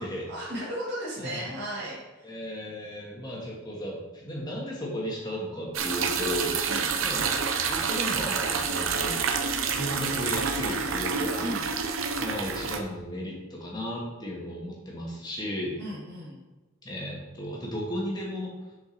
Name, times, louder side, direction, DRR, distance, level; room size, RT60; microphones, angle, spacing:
voice 1, 0.3-2.3 6.7-7.0 11.4-11.6 15.8-16.4, equal, 55° right, -10 dB, 2.3 m, -35 dB
voice 2, 1.2-1.5 2.2-7.3 7.7-9.2 9.7-11.5 12.2-15.8 16.8-18.5, left 1 dB, 20° left, -4 dB, 1.8 m, -35 dB
sound 1, 5.7-12.8, right 5 dB, 70° right, 0.7 m, -28 dB
6.6 x 5.4 x 4.6 m, 1.1 s
head